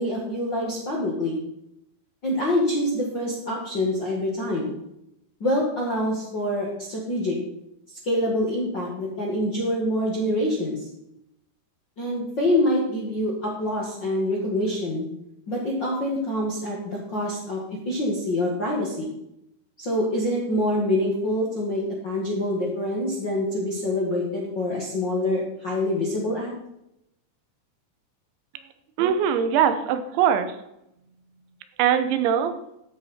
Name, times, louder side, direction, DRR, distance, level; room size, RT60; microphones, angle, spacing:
voice 1, 0.0-1.4 2.2-4.8 5.4-7.4 8.0-10.9 12.0-15.1 15.5-17.6 17.8-19.1 19.8-26.5, left 1 dB, 45° left, -4 dB, 1.5 m, -26 dB
voice 2, 29.0-30.6 31.8-32.5, right 8 dB, 90° right, 9 dB, 3.4 m, -21 dB
13.5 x 8.7 x 4.4 m, 0.81 s
omnidirectional pair, 5.1 m